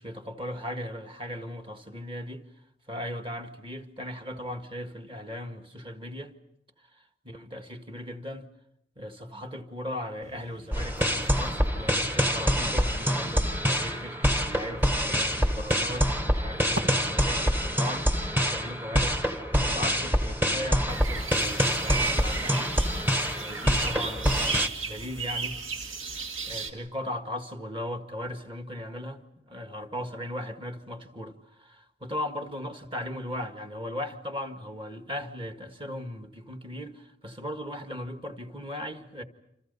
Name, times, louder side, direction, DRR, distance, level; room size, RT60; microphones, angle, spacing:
voice 1, 0.0-2.4 2.9-6.3 6.9-8.5 8.9-18.1 18.5-19.2 19.5-22.7 23.3-25.6 26.5-39.2, left 1 dB, 25° right, 1.8 m, -37 dB
sound 1, 10.2-16.8, right 1 dB, 85° right, 2.4 m, -44 dB
sound 2, 10.7-24.7, equal, 10° right, 1.2 m, -26 dB
sound 3, 20.9-26.7, right 5 dB, 65° right, 2.1 m, -35 dB
28.5 x 27.0 x 5.5 m
head